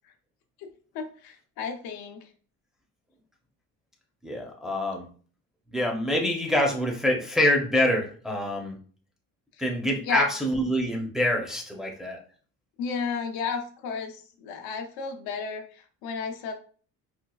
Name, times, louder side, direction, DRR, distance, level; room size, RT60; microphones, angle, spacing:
voice 1, 0.9-2.2 10.1-10.3 12.8-16.5, left 5 dB, 90° left, 5 dB, 0.7 m, -32 dB
voice 2, 4.2-5.1 5.7-8.8 9.6-12.2, left 1 dB, ahead, 0 dB, 0.5 m, -26 dB
4.3 x 2.3 x 2.2 m, 0.42 s
cardioid pair, 130°, 36 cm